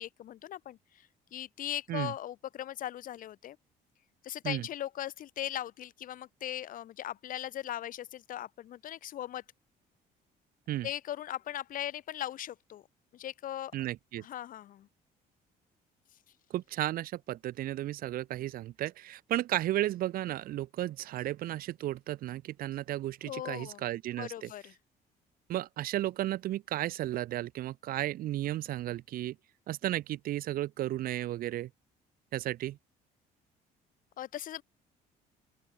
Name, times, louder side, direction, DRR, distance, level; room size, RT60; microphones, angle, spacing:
voice 1, 0.0-3.6 4.2-9.4 10.8-12.9 13.1-13.9 14.2-14.9 23.2-23.8 24.2-24.8 34.2-34.6, left 12 dB, 55° left, 0.7 m, -39 dB
voice 2, 13.7-14.2 16.5-24.5 25.5-29.4 29.7-31.7 32.3-32.8, right 14 dB, 60° right, 0.5 m, -34 dB
open air
cardioid pair, 110°, 17 cm